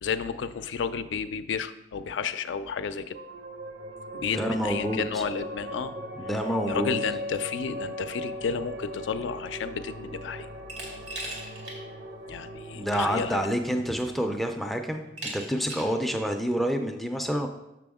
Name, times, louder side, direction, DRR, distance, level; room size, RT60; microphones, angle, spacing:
voice 1, 0.0-3.2 4.1-5.9 6.7-10.5 12.3-13.4, left 6 dB, 90° left, 10 dB, 0.4 m, -32 dB
sound 1, 3.1-16.0, equal, 70° right, 1.0 m, -39 dB
voice 2, 4.3-5.0 6.2-7.0 12.7-15.0 15.3-17.5, equal, ahead, 4 dB, 0.4 m, -28 dB
Glass, 10.7-11.8 12.2-12.3 13.4-13.5 14.0-14.4 15.2-16.0, right 2 dB, 85° right, 2.0 m, -38 dB
6.8 x 6.0 x 3.5 m, 0.91 s
head